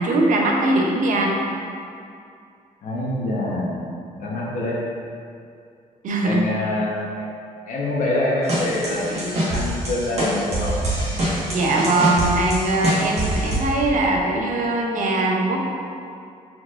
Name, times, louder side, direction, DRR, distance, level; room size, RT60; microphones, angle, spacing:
voice 1, 0.0-1.4 6.0-6.5 11.1-15.6, right 2 dB, 65° right, -1 dB, 0.7 m, -21 dB
voice 2, 2.8-3.8 4.2-4.8 6.2-7.3 7.7-10.8, left 2 dB, 65° left, -4 dB, 1.0 m, -25 dB
sound 1, 8.5-13.6, right 1 dB, 50° right, 1.4 m, -24 dB
4.6 x 4.3 x 2.5 m, 2.4 s
cardioid pair, 110°, 14 cm